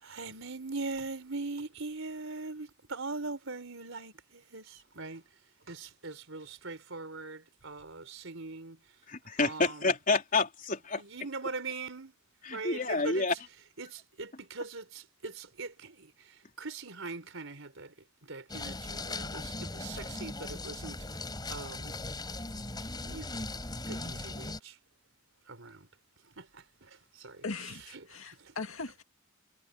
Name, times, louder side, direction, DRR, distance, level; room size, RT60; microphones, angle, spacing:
voice 1, 0.0-5.2 5.7-8.8 9.4-9.9 11.0-12.1 12.5-13.3 13.8-16.1 16.6-17.9 18.2-21.0 21.5-22.0 22.6-22.8 23.0-23.4 23.9-24.7 25.5-25.8 26.4-26.9 27.1-27.4 28.4-28.5, right 3 dB, 70° right, 4.5 m, -41 dB
voice 2, 9.1-11.0 12.4-13.3, left 3 dB, 40° left, 3.7 m, -29 dB
sound 1, 18.5-24.6, left 2 dB, 20° left, 5.4 m, -39 dB
voice 3, 27.4-29.0, left 3 dB, 80° left, 2.2 m, -39 dB
head